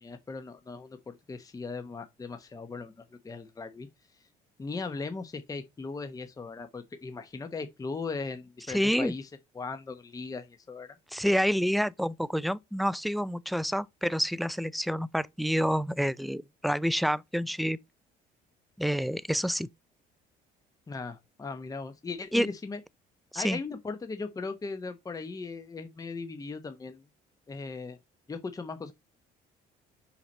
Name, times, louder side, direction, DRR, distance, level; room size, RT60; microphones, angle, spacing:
voice 1, 0.0-3.9 4.1-4.3 4.6-9.3 9.5-11.0 20.9-22.8 23.3-27.0 27.5-28.0 28.3-28.9, left 4 dB, 20° left, 0.9 m, -38 dB
voice 2, 8.7-9.1 11.1-17.8 18.8-19.7 22.3-22.5 23.3-23.6, equal, ahead, 0.4 m, -28 dB
5.8 x 5.7 x 5.3 m
cardioid pair, 110°, 17 cm